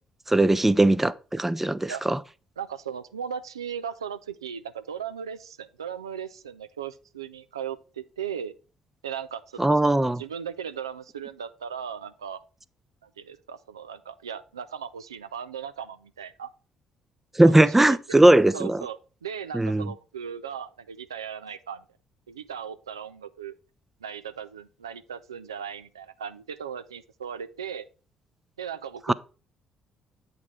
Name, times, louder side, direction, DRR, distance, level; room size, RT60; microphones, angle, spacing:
voice 1, 0.3-2.2 9.6-10.2 17.4-18.8 19.5-19.9 29.1-29.2, right 1 dB, 10° right, 0.5 m, -19 dB
voice 2, 2.6-8.5 9.0-12.4 13.0-16.5 17.6-18.2 18.5-21.8 22.3-23.5 24.0-27.9 28.6-29.1, right 8 dB, 80° right, 0.3 m, -37 dB
8.3 x 4.1 x 4.5 m
figure-of-eight pair, 45°, 3 cm